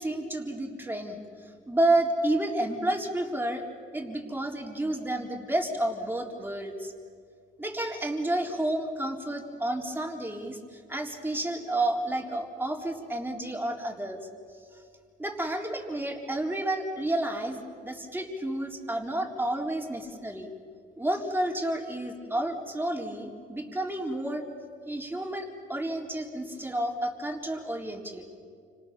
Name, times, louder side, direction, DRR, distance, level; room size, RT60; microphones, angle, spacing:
voice 1, 0.0-3.7 3.9-6.9 7.6-14.3 15.2-20.5 21.0-24.4 24.9-28.3, right 1 dB, 10° right, 1 dB, 3.9 m, -30 dB
30.0 x 26.0 x 7.1 m, 2.2 s
cardioid pair, 90°, 20 cm